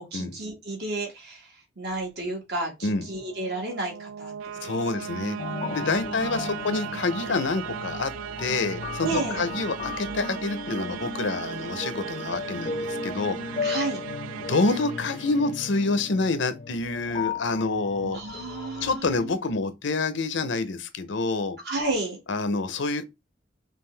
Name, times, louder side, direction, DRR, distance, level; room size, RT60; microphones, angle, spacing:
voice 1, 0.0-4.3 4.6-4.8 6.0-6.6 9.0-9.4 13.6-14.1 18.0-19.4 21.6-22.2, right 2 dB, 55° right, 1.8 m, -32 dB
sound 1, 3.0-16.0, right 8 dB, 90° right, 0.3 m, -37 dB
voice 2, 4.6-5.4 5.7-8.1 8.4-13.6 14.4-18.2 18.8-21.6 22.3-23.1, left 3 dB, 70° left, 0.7 m, -27 dB
sound 2, 5.4-19.0, left 5 dB, 35° left, 0.3 m, -36 dB
5.4 x 2.5 x 3.2 m
head